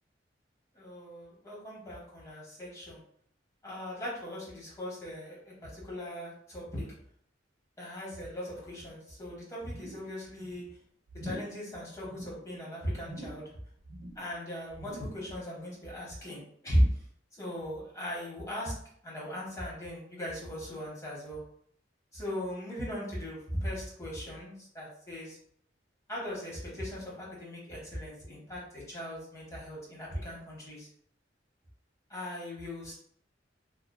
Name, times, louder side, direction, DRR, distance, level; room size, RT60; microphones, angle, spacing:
voice 1, 0.7-3.0 3.6-6.9 7.8-10.6 11.1-13.4 14.2-17.0 17.4-18.7 19.0-21.4 22.1-25.4 26.1-30.9 32.1-32.9, equal, 15° left, -5 dB, 0.9 m, -37 dB
sound 1, 9.6-10.1 10.4-10.7 11.1-11.6 11.9-12.4 13.0-13.5 13.8-14.3 14.7-15.2 15.6-15.7, right 2 dB, 80° right, 0.5 m, -47 dB
2.7 x 2.3 x 2.2 m, 0.64 s
head